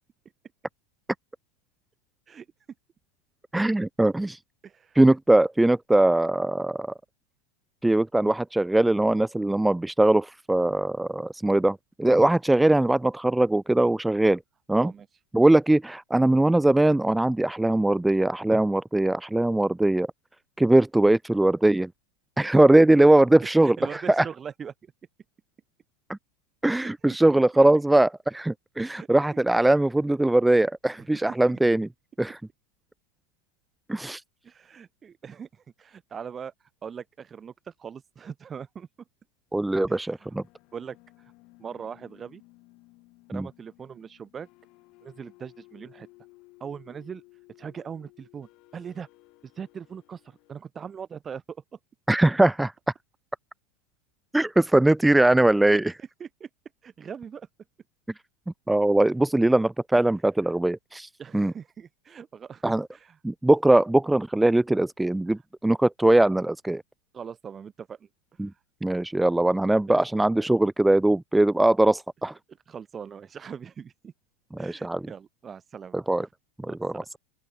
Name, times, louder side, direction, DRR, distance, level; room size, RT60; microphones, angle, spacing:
voice 1, 3.5-4.4 5.0-6.9 7.8-14.4 14.7-14.9 15.3-20.1 20.6-21.9 22.4-24.3 26.1-26.2 26.6-31.9 32.2-32.4 33.9-34.2 39.5-40.4 43.3-43.5 52.1-52.7 54.3-55.9 58.7-61.5 62.6-62.9 63.2-66.8 68.4-68.5 68.8-72.3 74.6-75.0 75.9-76.3 76.6-77.2, right 1 dB, 5° right, 0.4 m, -21 dB
voice 2, 4.6-5.0 14.7-15.1 23.6-24.9 26.7-26.9 27.3-27.6 28.8-29.1 31.0-31.6 34.4-36.5 36.8-38.9 39.9-40.3 40.7-41.0 41.6-42.4 43.3-44.5 45.0-46.1 46.6-47.2 47.6-49.1 49.6-51.6 55.7-55.8 56.2-56.5 56.8-57.5 61.2-63.2 67.1-68.1 69.9-70.0 72.7-74.1 74.6-76.3 76.7-77.1, right 7 dB, 20° right, 2.3 m, -41 dB
sound 1, 39.6-50.6, left 24 dB, 50° left, 3.1 m, -57 dB
open air
supercardioid pair, 125°, 0 cm